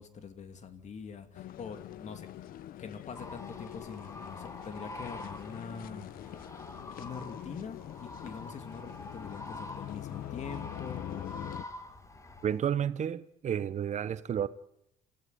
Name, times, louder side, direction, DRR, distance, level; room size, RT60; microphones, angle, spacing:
voice 1, 0.0-2.5 2.8-6.5 7.0-11.5, left 5 dB, 50° left, 2.7 m, -44 dB
sound 1, 1.3-11.6, left 12 dB, 65° left, 0.9 m, -44 dB
sound 2, 3.2-12.6, left 2 dB, 20° left, 2.4 m, -46 dB
voice 2, 12.4-14.5, right 9 dB, 50° right, 1.0 m, -31 dB
28.0 x 15.0 x 9.4 m
supercardioid pair, 80°, 16 cm